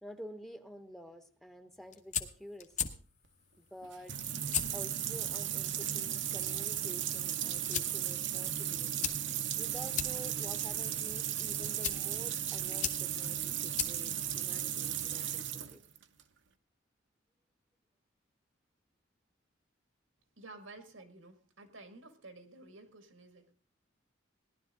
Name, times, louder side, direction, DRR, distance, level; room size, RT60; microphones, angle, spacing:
voice 1, 0.0-2.7 3.7-4.2 4.7-9.1 9.5-15.8, equal, ahead, 7 dB, 0.9 m, -49 dB
sound 1, 1.7-15.1, left 8 dB, 40° left, 1.2 m, -42 dB
sound 2, 3.8-16.2, right 10 dB, 65° right, 0.9 m, -36 dB
voice 2, 20.4-23.5, right 2 dB, 90° right, 7 dB, 2.1 m, -52 dB
17.5 x 11.5 x 3.8 m, 0.41 s
head